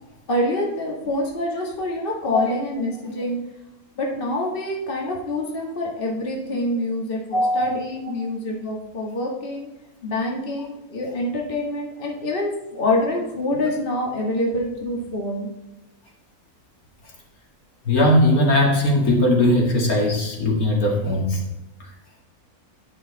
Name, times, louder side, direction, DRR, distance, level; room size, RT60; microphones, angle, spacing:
voice 1, 0.3-3.4 4.0-9.7 10.0-15.5, left 1 dB, 35° left, -1 dB, 1.8 m, -26 dB
voice 2, 7.3-7.8 8.2-8.3 17.9-21.4 21.8-21.9, left 1 dB, 70° left, -1 dB, 2.5 m, -19 dB
10.5 x 6.3 x 4.0 m, 0.96 s
omnidirectional pair, 1.6 m